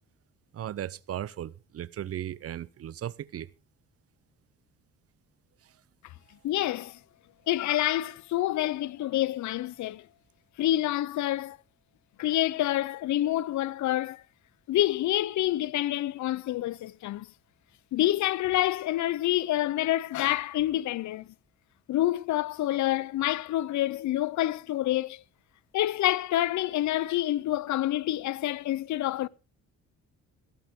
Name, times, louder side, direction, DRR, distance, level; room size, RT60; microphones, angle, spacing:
voice 1, 0.5-3.5, right 11 dB, 50° right, 0.6 m, -36 dB
voice 2, 6.4-7.0 7.5-10.0 10.6-11.6 12.2-14.2 14.7-17.3 17.9-21.3 21.9-25.2 25.7-29.3, left 14 dB, 70° left, 0.6 m, -27 dB
16.5 x 13.0 x 3.6 m
cardioid pair, 90°, 30 cm